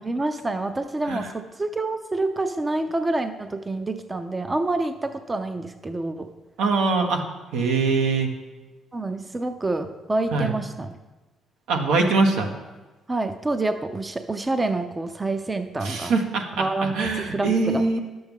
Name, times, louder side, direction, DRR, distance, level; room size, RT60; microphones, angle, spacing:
voice 1, 0.0-6.3 8.9-11.0 13.1-16.1 16.5-18.0, right 2 dB, 20° right, 9 dB, 0.5 m, -27 dB
voice 2, 6.6-7.2 7.5-8.3 10.3-10.5 11.7-12.5 15.8-16.6 16.9-18.0, right 3 dB, 85° right, 3 dB, 1.2 m, -22 dB
10.5 x 7.7 x 3.6 m, 1.2 s
cardioid pair, 90°, 0 cm